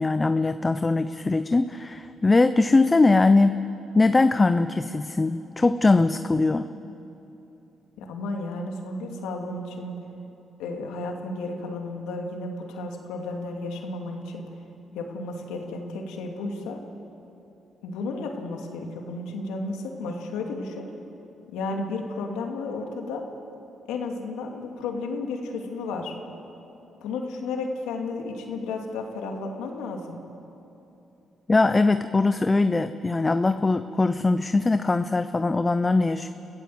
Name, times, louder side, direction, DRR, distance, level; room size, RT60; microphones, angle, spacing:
voice 1, 0.0-3.6 3.9-6.7 31.5-36.3, left 3 dB, 25° left, 10 dB, 0.7 m, -21 dB
voice 2, 8.0-10.0 10.6-14.5 14.9-16.8 17.8-20.9 21.5-23.2 23.9-26.2 27.0-30.2, left 3 dB, 85° left, 2 dB, 2.6 m, -33 dB
28.0 x 14.5 x 7.9 m, 2.9 s
supercardioid pair, 60°, 0 cm